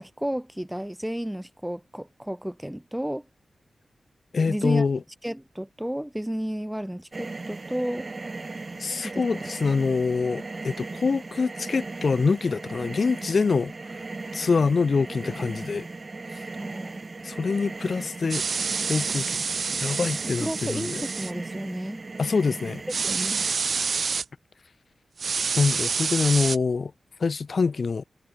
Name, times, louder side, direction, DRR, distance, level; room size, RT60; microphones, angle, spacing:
voice 1, 0.0-3.3 4.5-4.9 5.2-8.1 9.0-9.5 16.6-17.0 20.4-22.0 23.0-23.4, equal, 5° right, 1.0 m, -32 dB
voice 2, 4.3-5.0 8.8-13.7 14.3-15.9 17.2-18.4 18.9-19.4 19.7-20.9 22.2-22.8 25.5-26.9 27.2-28.0, left 4 dB, 60° left, 0.7 m, -25 dB
sound 1, 7.1-23.5, right 3 dB, 45° right, 1.2 m, -38 dB
sound 2, 18.3-21.3 22.9-24.2 25.2-26.6, right 5 dB, 70° right, 1.0 m, -28 dB
cardioid pair, 45°, 0 cm